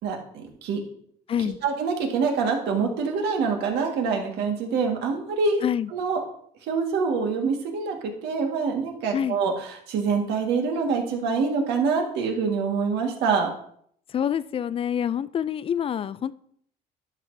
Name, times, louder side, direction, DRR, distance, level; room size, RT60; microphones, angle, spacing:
voice 1, 0.0-0.8 1.6-5.6 5.9-6.2 6.7-13.5, right 5 dB, 80° right, 2 dB, 1.7 m, -25 dB
voice 2, 14.1-16.3, left 9 dB, 35° left, 17 dB, 0.3 m, -26 dB
11.5 x 6.1 x 2.7 m, 0.63 s
cardioid pair, 110°, 17 cm